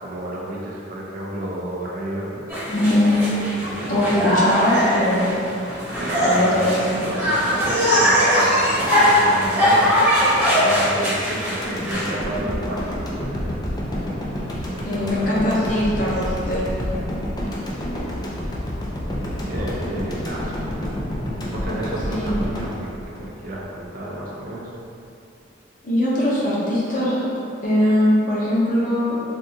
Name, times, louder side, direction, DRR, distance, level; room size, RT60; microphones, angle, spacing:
voice 1, 0.0-2.4 3.6-4.4 6.0-6.7 7.0-10.0 10.3-13.3 14.6-15.5 17.9-18.1 19.0-19.1 19.4-20.6 21.5-24.7, right 1 dB, 45° right, -4 dB, 0.5 m, -31 dB
sound 1, 2.5-12.1, equal, 10° right, 1.0 m, -20 dB
voice 2, 2.7-3.1 3.9-5.3 6.2-7.0 14.8-16.7 22.1-22.4 25.8-27.3 27.6-29.2, left 1 dB, 45° left, -7 dB, 0.7 m, -21 dB
sound 2, 11.6-23.8 24.2-24.3, equal, 20° left, 0.4 m, -29 dB
3.5 x 2.5 x 2.7 m, 2.6 s
head